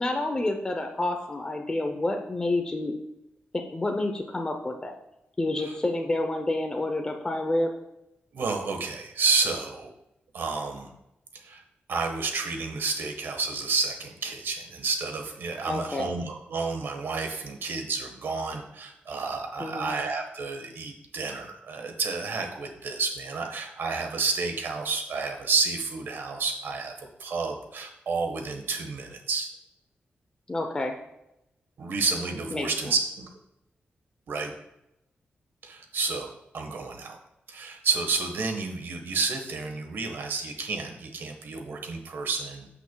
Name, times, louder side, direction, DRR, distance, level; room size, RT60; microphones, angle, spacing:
voice 1, 0.0-2.9 3.5-4.9 5.4-7.7 15.7-16.1 19.6-19.9 30.5-31.0 32.5-32.9, left 2 dB, 20° left, 3 dB, 0.7 m, -29 dB
voice 2, 8.3-9.9 10.3-10.9 11.3-11.6 11.9-26.9 27.2-29.5 31.8-33.3 34.3-34.5 35.6-36.3 36.5-37.2 37.5-42.7, right 4 dB, 75° right, 4 dB, 1.4 m, -30 dB
14.5 x 6.0 x 2.3 m, 0.86 s
wide cardioid pair, 150°, 4 cm